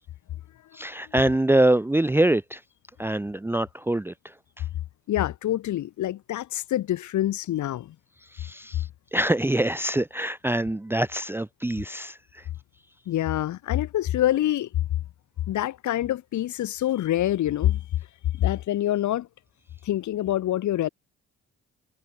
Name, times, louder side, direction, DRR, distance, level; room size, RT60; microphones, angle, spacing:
voice 1, 0.7-2.6 3.0-4.6 8.2-12.5, right 1 dB, 5° right, 0.8 m, -25 dB
voice 2, 5.1-7.9 13.1-14.7 15.5-17.8 18.4-19.3 19.8-20.9, left 13 dB, 70° left, 1.5 m, -26 dB
cardioid pair, 90°, 30 cm